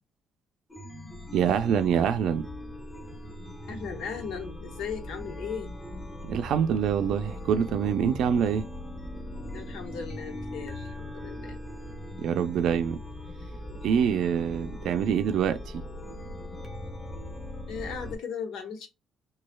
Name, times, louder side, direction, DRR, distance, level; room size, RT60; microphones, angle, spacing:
Chime, 0.7-18.1, left 1 dB, 15° left, 1.1 m, -40 dB
voice 1, 1.3-2.5 6.3-8.7 12.2-13.0 13.8-15.6, right 8 dB, 70° right, 0.5 m, -25 dB
voice 2, 3.7-5.7 9.5-11.6 17.7-18.9, left 6 dB, 80° left, 1.1 m, -37 dB
6.2 x 2.4 x 2.2 m
cardioid pair, 130°, 0 cm